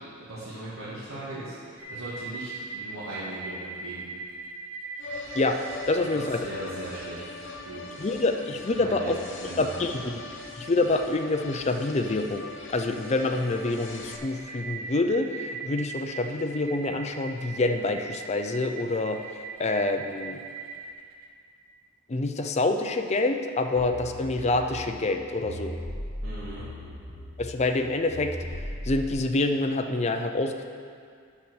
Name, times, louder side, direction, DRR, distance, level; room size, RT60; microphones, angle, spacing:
voice 1, 0.0-4.1 6.0-7.3 7.6-7.8 8.7-9.8 26.2-26.7, right 1 dB, 75° right, -11 dB, 2.1 m, -39 dB
sound 1, 1.8-21.3, right 4 dB, 90° right, 0.8 m, -41 dB
sound 2, 5.0-14.2, left 3 dB, 60° left, 0.9 m, -41 dB
voice 2, 5.3-6.4 8.0-9.2 9.6-10.2 10.6-20.4 22.1-25.8 27.4-28.4 28.9-30.6, left 2 dB, 30° left, 6 dB, 0.5 m, -27 dB
sound 3, 23.8-29.1, equal, 40° right, 1.7 m, -38 dB
8.5 x 6.0 x 6.3 m, 2.2 s
head